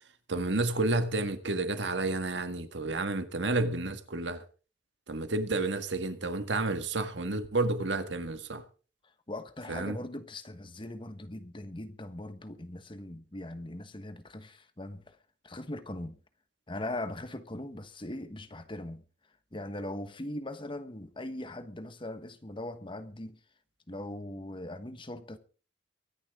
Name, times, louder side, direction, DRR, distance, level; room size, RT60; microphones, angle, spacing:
voice 1, 0.3-4.4 5.1-8.6 9.7-10.0, right 2 dB, 85° right, 1.7 m, -30 dB
voice 2, 9.3-15.2 15.4-16.2 16.7-19.0 19.5-23.4 23.9-25.4, left 1 dB, 30° left, 1.3 m, -40 dB
23.5 x 10.5 x 3.7 m
head